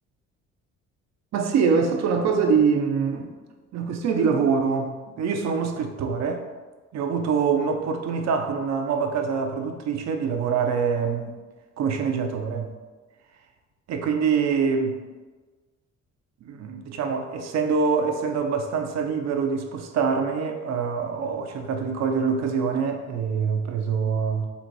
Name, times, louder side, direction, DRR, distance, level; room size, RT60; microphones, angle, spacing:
voice 1, 1.3-3.3 3.7-6.4 6.9-11.3 11.8-12.7 13.9-15.0 16.4-24.5, right 5 dB, 60° right, 0.6 m, -24 dB
4.0 x 2.5 x 4.5 m
cardioid pair, 90°, 30 cm